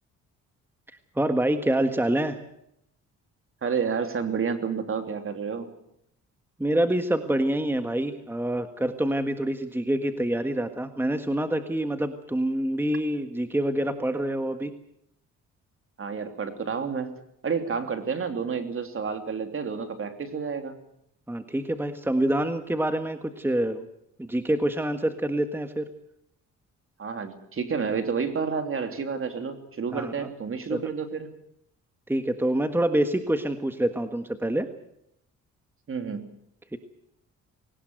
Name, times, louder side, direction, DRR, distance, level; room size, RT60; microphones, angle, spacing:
voice 1, 1.1-2.4 6.6-14.7 21.3-23.9 24.2-25.9 29.9-30.3 30.7-30.8 32.1-34.7 36.7-36.8, right 1 dB, 5° right, 8 dB, 1.6 m, -26 dB
voice 2, 3.6-5.7 16.0-17.1 17.4-20.8 27.0-31.3 35.9-36.3, right 6 dB, 45° right, 7 dB, 3.1 m, -30 dB
21.0 x 18.5 x 8.0 m, 0.76 s
cardioid pair, 90°, 30 cm